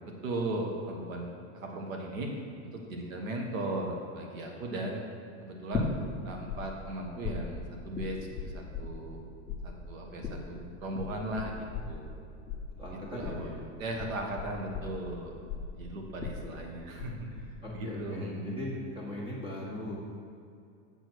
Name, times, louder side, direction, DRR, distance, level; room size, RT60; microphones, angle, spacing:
voice 1, 0.2-2.3 2.6-5.1 5.4-5.9 6.2-9.2 9.6-12.1 12.9-15.3 15.7-18.6, right 1 dB, 85° right, 1 dB, 1.6 m, -37 dB
sound 1, 5.7-6.6 6.8-9.2 9.5-17.1 17.4-17.9, left 5 dB, 5° left, 0.4 m, -37 dB
voice 2, 12.8-13.6 17.6-20.0, left 1 dB, 15° right, -5 dB, 1.4 m, -39 dB
7.6 x 4.9 x 6.2 m, 2.5 s
supercardioid pair, 170°, 39 cm